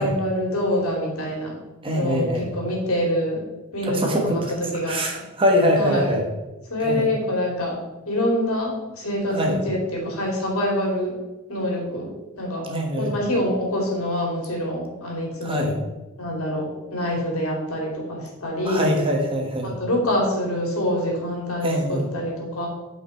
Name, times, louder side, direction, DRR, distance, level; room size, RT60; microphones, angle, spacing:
voice 1, 0.0-1.5 1.9-3.4 3.7-5.2 5.7-6.1 6.7-7.8 8.1-11.1 11.5-12.1 12.4-12.7 13.0-15.7 16.2-18.9 19.6-22.7, left 1 dB, 75° left, -1 dB, 2.6 m, -25 dB
voice 2, 1.8-2.5 3.9-4.4 4.9-6.3 6.8-7.1 9.3-9.6 12.7-13.1 15.4-15.7 18.7-19.7 21.6-22.0, equal, 25° right, 1 dB, 1.3 m, -23 dB
8.7 x 5.4 x 4.4 m, 1.0 s
head